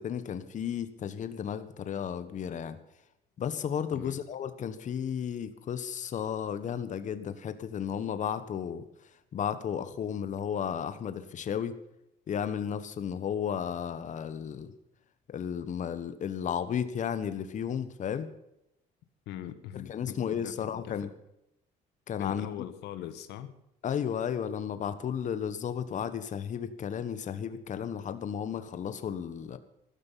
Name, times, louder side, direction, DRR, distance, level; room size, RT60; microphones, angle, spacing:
voice 1, 0.0-2.8 3.4-11.8 12.3-14.7 15.3-18.3 19.7-21.1 22.1-22.5 23.8-29.6, left 8 dB, 45° left, 11 dB, 1.3 m, -33 dB
voice 2, 19.2-21.1 22.2-23.5, left 11 dB, 85° left, 11 dB, 1.5 m, -42 dB
15.0 x 12.5 x 5.7 m, 0.85 s
cardioid pair, 110°, 17 cm